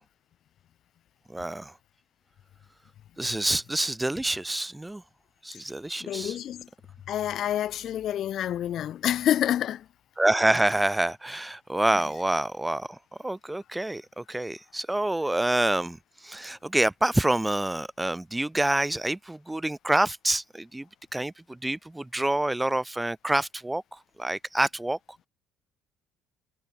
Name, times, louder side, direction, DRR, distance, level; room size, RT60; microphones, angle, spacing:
voice 1, 1.3-1.7 3.2-5.0 5.4-6.4 10.2-13.0 13.2-16.0 16.2-25.0, right 1 dB, 10° right, 5.0 m, -27 dB
voice 2, 6.0-6.7 7.1-9.8, left 11 dB, 60° left, 3.5 m, -28 dB
supercardioid pair, 90°, 0 cm